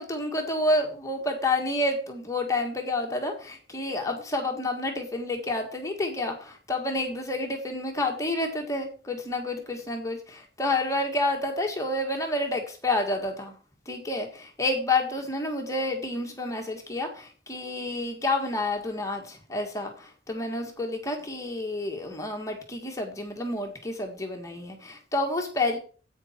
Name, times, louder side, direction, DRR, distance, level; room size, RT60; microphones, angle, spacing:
voice 1, 0.0-13.5 13.8-25.8, left 2 dB, 20° left, 2 dB, 1.6 m, -29 dB
10.0 x 8.6 x 4.4 m, 0.39 s
head